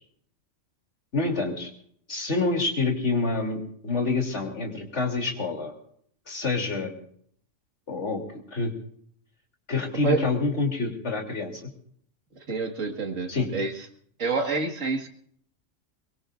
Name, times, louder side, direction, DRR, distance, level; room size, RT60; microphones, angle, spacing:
voice 1, 1.1-1.7 2.1-5.7 6.3-6.9 7.9-8.2 8.5-8.7 9.7-11.7 13.3-13.5, left 3 dB, 65° left, 2 dB, 3.4 m, -27 dB
voice 2, 12.5-13.7 14.2-15.1, right 4 dB, 90° right, 4 dB, 2.2 m, -27 dB
23.0 x 22.5 x 2.5 m, 0.64 s
omnidirectional pair, 1.3 m